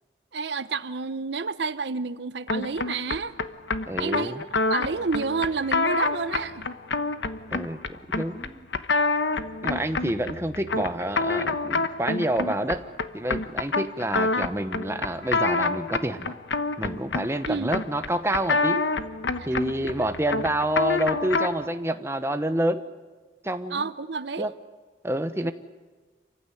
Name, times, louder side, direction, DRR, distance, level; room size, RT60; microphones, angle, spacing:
voice 1, 0.3-3.3 4.0-6.7 17.5-17.7 23.7-24.5 25.4-25.5, right 4 dB, 75° right, 14 dB, 0.8 m, -30 dB
sound 1, 2.5-21.7, left 3 dB, 85° left, 1.1 m, -28 dB
voice 2, 3.9-4.4 7.5-8.7 9.6-12.8 13.1-16.3 16.8-18.9 19.5-22.8 23.4-23.9 24.4-24.5 25.0-25.5, right 1 dB, 15° right, 8 dB, 1.0 m, -28 dB
27.5 x 15.5 x 9.9 m, 1.4 s
head